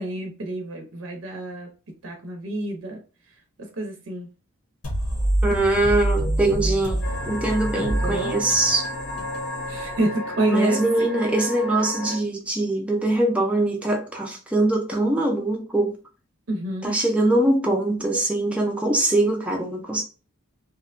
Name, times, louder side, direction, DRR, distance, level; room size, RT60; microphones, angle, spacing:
voice 1, 0.0-1.7 2.0-3.0 3.6-4.3 7.7-8.3 9.7-11.3 16.5-16.9, right 1 dB, 70° right, 0.6 m, -29 dB
sound 1, 4.8-10.5, right 1 dB, 90° left, 1.0 m, -27 dB
voice 2, 5.4-8.9 10.5-15.9 16.8-20.0, right 2 dB, 5° right, 0.4 m, -22 dB
sound 2, 7.0-12.2, left 1 dB, 50° left, 0.6 m, -33 dB
2.8 x 2.2 x 2.4 m
head